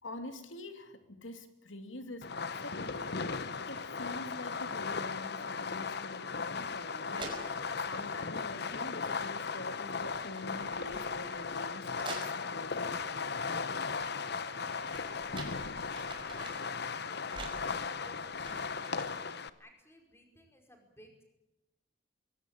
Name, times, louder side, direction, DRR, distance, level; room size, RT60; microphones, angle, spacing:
voice 1, 0.0-3.1 3.7-7.3 7.9-13.0, left 2 dB, 80° left, 8 dB, 2.9 m, -45 dB
Fireworks, 2.2-19.5, left 5 dB, 60° left, 1.1 m, -37 dB
sound 1, 6.7-6.8 7.2-8.1 8.9-9.3 9.6-12.8 14.3-16.8 17.2-19.3, right 2 dB, 25° right, 5.2 m, -48 dB
voice 2, 13.6-21.2, equal, 15° left, 4 dB, 5.1 m, -61 dB
22.5 x 17.5 x 9.7 m, 0.94 s
head